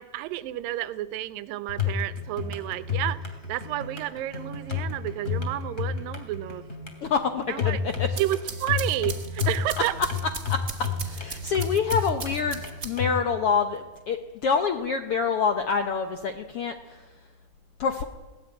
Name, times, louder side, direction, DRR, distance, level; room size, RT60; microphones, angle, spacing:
voice 1, 0.0-3.2 3.5-6.6 7.5-7.8 8.2-9.9, right 14 dB, 85° right, 14 dB, 2.6 m, -30 dB
sound 1, 1.7-13.2, left 6 dB, 25° left, 2.9 m, -31 dB
voice 2, 7.0-8.1 10.5-10.6 11.0-14.2 14.4-17.0 17.8-18.0, left 5 dB, 75° left, 7 dB, 1.3 m, -26 dB
sound 2, 7.9-13.2, right 5 dB, 65° right, 0.6 m, -39 dB
20.5 x 16.5 x 9.7 m, 1.2 s
omnidirectional pair, 3.9 m